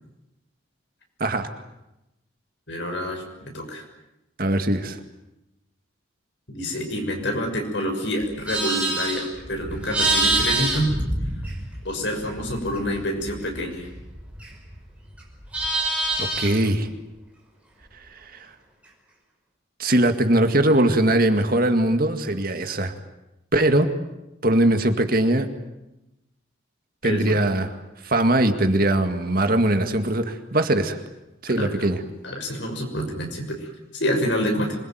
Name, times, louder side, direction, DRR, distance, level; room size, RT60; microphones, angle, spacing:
voice 1, 2.7-3.2 3.5-3.8 6.5-9.2 9.5-10.9 11.8-13.9 27.0-27.4 31.6-31.9 32.2-34.8, equal, 65° left, 3 dB, 6.3 m, -27 dB
voice 2, 4.4-5.0 16.2-16.9 19.8-22.9 23.5-23.9 24.4-25.5 27.0-27.8 28.0-31.0 31.4-32.0, right 1 dB, 45° right, 7 dB, 2.0 m, -21 dB
Livestock farm animals working animals, 8.2-11.9 12.2-14.8 15.1-16.7, right 2 dB, 5° right, 5.8 m, -26 dB
26.0 x 21.0 x 9.4 m, 0.94 s
head